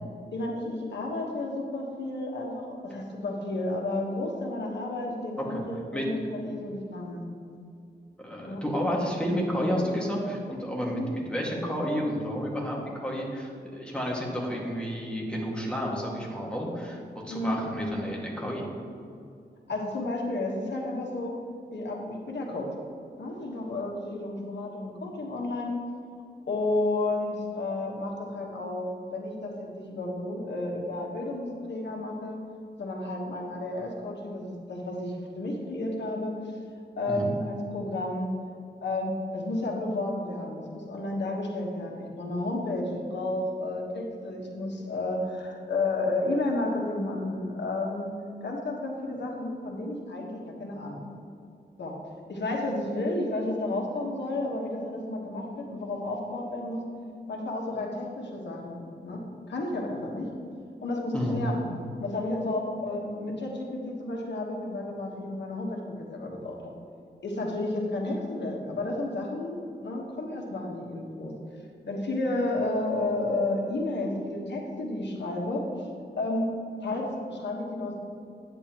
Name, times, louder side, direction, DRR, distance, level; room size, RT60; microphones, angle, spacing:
voice 1, 0.3-7.2 8.4-8.7 10.9-11.1 17.3-17.6 19.7-21.3 21.7-22.7 23.2-25.7 26.5-32.4 32.8-36.5 37.0-38.3 38.8-48.1 48.4-51.1 51.8-51.9 52.3-56.8 57.3-60.3 60.8-61.7 62.0-65.8 66.1-66.7 67.2-71.3 71.9-75.9 76.2-76.5 76.8-78.0, left 2 dB, 80° left, -1 dB, 1.4 m, -32 dB
voice 2, 8.2-18.7 37.1-37.3 61.1-61.4, equal, 5° left, -3 dB, 1.9 m, -31 dB
10.0 x 9.0 x 3.0 m, 2.4 s
wide cardioid pair, 85°, 18 cm